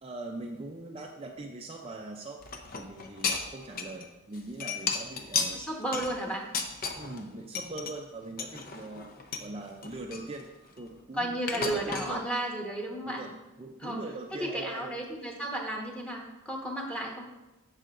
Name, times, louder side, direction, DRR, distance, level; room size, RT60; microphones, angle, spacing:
voice 1, 0.0-2.4 2.8-5.6 6.9-9.1 9.4-10.5 10.8-12.3 13.0-15.1, right 2 dB, 30° right, 1 dB, 0.5 m, -41 dB
sound 1, 2.4-4.1 4.3-7.2 7.6-7.9 8.4-9.5 9.8-11.0 11.5-12.1, left 5 dB, 45° left, 0.8 m, -34 dB
voice 2, 5.5-6.4 11.1-13.2 13.8-14.0 14.3-17.3, right 1 dB, 5° left, -1 dB, 1.3 m, -33 dB
14.0 x 5.7 x 2.6 m, 1.0 s
head